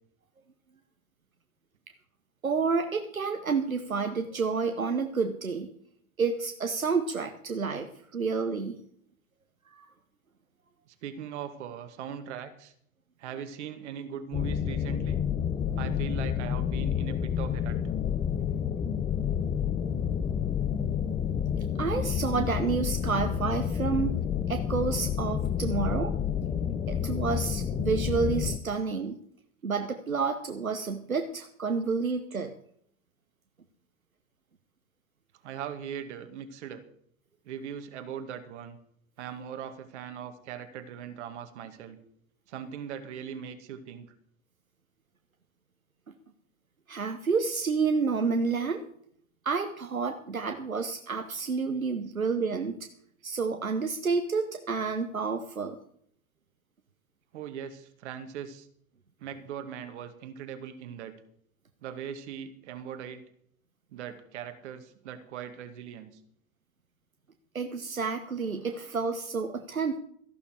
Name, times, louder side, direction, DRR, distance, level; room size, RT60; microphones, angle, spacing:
voice 1, 2.4-5.7 6.2-8.8 9.7-9.9 21.8-24.1 24.5-26.1 26.9-29.2 29.6-32.6 46.9-48.8 49.4-52.9 53.2-55.8 67.5-70.0, right 5 dB, 85° right, 6 dB, 1.0 m, -29 dB
voice 2, 10.9-12.7 13.2-15.2 15.8-17.8 25.6-25.7 35.4-36.8 37.5-38.8 39.2-42.0 42.5-44.1 57.3-58.7 59.2-61.1 61.8-63.2 63.9-66.2, right 8 dB, 55° right, 8 dB, 2.0 m, -40 dB
sound 1, 14.3-28.6, left 8 dB, 15° left, 0.5 m, -29 dB
14.5 x 11.5 x 4.6 m, 0.66 s
figure-of-eight pair, 90°, 41 cm